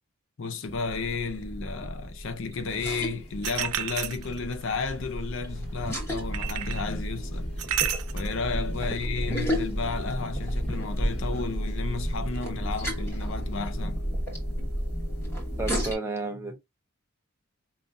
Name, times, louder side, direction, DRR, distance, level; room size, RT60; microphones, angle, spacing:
voice 1, 0.4-14.1, left 4 dB, 60° left, 0.5 m, -33 dB
sound 1, 0.7-16.0, equal, 10° left, 1.2 m, -32 dB
sound 2, 2.7-12.4, equal, 30° left, 1.4 m, -57 dB
sound 3, 3.4-4.6 6.3-6.9 7.6-8.3, right 11 dB, 85° right, 0.4 m, -30 dB
voice 2, 15.6-16.6, right 2 dB, 10° right, 0.6 m, -32 dB
5.2 x 2.4 x 2.5 m
head